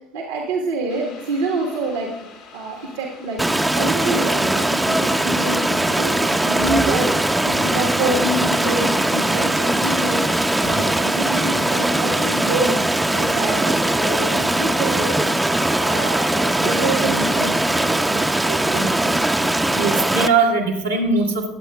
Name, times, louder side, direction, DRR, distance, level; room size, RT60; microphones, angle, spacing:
voice 1, 0.1-2.1 2.5-12.8 13.1-15.3 15.8-18.2 18.6-19.1, right 2 dB, 70° right, 0 dB, 1.4 m, -27 dB
sound 1, 0.9-15.0, left 4 dB, 70° left, 2.3 m, -43 dB
Stream, 3.4-20.3, right 1 dB, 10° right, 0.7 m, -20 dB
sound 2, 6.6-8.1 10.6-11.2, left 2 dB, 50° left, 1.2 m, -34 dB
voice 2, 18.5-18.9 19.7-21.5, right 4 dB, 90° right, -4 dB, 1.8 m, -21 dB
21.5 x 8.4 x 2.4 m, 0.92 s
figure-of-eight pair, 55°, 0 cm